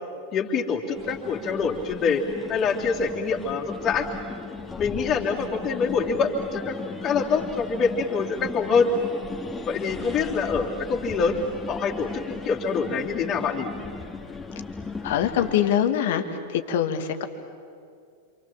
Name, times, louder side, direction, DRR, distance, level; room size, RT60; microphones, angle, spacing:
voice 1, 0.3-2.2 2.5-4.1 4.8-6.7 7.0-8.9 9.7-11.4 11.7-13.7, left 5 dB, 30° left, 0 dB, 3.2 m, -25 dB
sound 1, 0.9-15.6, left 4 dB, 10° left, 2.4 m, -37 dB
voice 2, 15.0-16.2 16.5-17.2, left 10 dB, 55° left, 8 dB, 2.0 m, -23 dB
27.5 x 27.5 x 7.4 m, 2.3 s
figure-of-eight pair, 90°, 0 cm